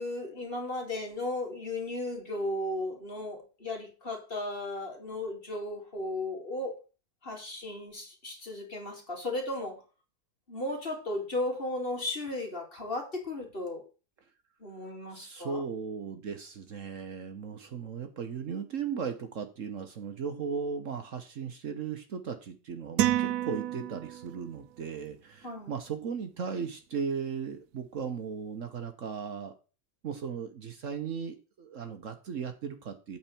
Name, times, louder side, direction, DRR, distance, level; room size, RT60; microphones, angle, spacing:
voice 1, 0.0-6.8 7.2-9.8 10.5-13.8 14.6-15.6 25.4-25.7, left 2 dB, 35° left, 2.7 m, -35 dB
voice 2, 15.1-29.5 30.0-33.2, right 6 dB, 55° right, 1.2 m, -37 dB
sound 1, 23.0-24.5, right 12 dB, 80° right, 1.2 m, -29 dB
8.6 x 4.4 x 6.9 m
omnidirectional pair, 1.7 m